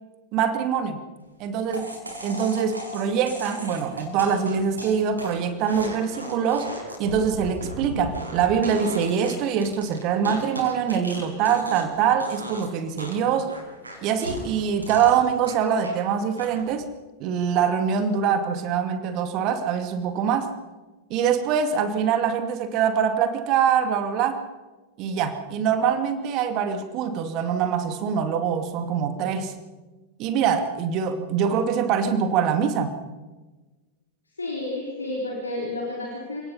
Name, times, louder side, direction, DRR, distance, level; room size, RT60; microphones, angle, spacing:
voice 1, 0.3-1.0 1.4-1.9 2.2-6.7 7.0-13.5 14.0-16.8 17.2-20.5 21.1-24.4 25.0-29.5 30.2-33.0, right 7 dB, 40° right, 8 dB, 2.5 m, -24 dB
sound 1, 1.7-12.0 12.2-12.7 13.0-16.0 16.4-16.8, right 1 dB, 80° right, 5.5 m, -37 dB
voice 2, 34.4-36.4, left 2 dB, 80° left, -2 dB, 4.4 m, -31 dB
28.5 x 18.0 x 5.7 m, 1.2 s
figure-of-eight pair, 90°, 0 cm